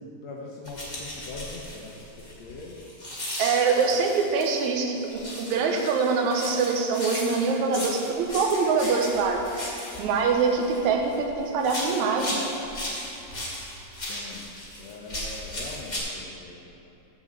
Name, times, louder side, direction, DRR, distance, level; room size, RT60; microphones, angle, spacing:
voice 1, 0.2-2.8 14.1-16.6, left 3 dB, 70° left, -2 dB, 1.9 m, -42 dB
sound 1, 0.6-4.7 5.1-11.2 11.6-16.0, left 1 dB, 20° left, 1.2 m, -36 dB
voice 2, 3.4-5.0 5.4-9.4 10.0-12.5, right 4 dB, 75° right, 2 dB, 2.2 m, -24 dB
7.9 x 6.2 x 7.7 m, 2.9 s
omnidirectional pair, 3.6 m